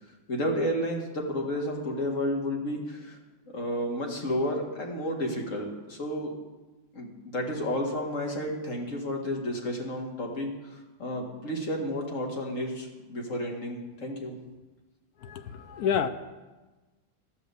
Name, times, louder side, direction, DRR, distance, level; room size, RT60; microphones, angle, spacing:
voice 1, 0.3-3.2 3.5-6.3 6.9-10.5 11.0-14.3, equal, 40° left, 1 dB, 1.9 m, -31 dB
voice 2, 15.2-16.1, left 8 dB, 70° left, 8 dB, 0.9 m, -28 dB
12.0 x 7.5 x 6.8 m, 1.2 s
omnidirectional pair, 2.1 m